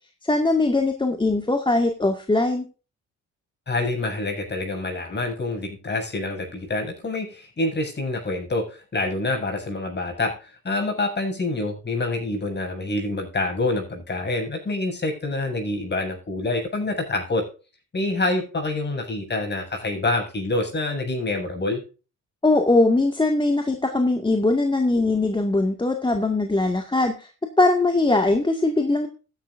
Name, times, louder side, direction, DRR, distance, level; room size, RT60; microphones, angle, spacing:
voice 1, 0.2-2.6 22.4-27.3 27.6-29.1, left 2 dB, 15° left, 4 dB, 2.0 m, -21 dB
voice 2, 3.7-17.4 17.9-21.8, left 2 dB, 35° left, 3 dB, 7.7 m, -26 dB
14.5 x 11.0 x 2.6 m, 0.34 s
cardioid pair, 90°, 30 cm